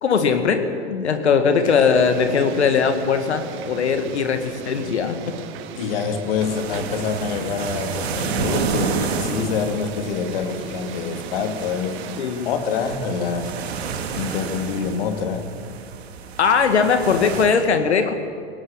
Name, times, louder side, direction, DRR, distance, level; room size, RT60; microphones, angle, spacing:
voice 1, 0.0-5.3 12.2-12.5 16.4-18.1, left 6 dB, 75° left, 7 dB, 2.1 m, -20 dB
voice 2, 1.1-1.4 5.7-12.0 12.4-13.5 14.2-15.5, left 6 dB, 55° left, 6 dB, 2.7 m, -26 dB
sound 1, 1.6-12.2, right 8 dB, 35° right, 1.8 m, -37 dB
sound 2, 6.4-17.5, right 5 dB, 65° right, 2.7 m, -30 dB
18.5 x 18.0 x 8.8 m, 2.3 s
figure-of-eight pair, 100°, 34 cm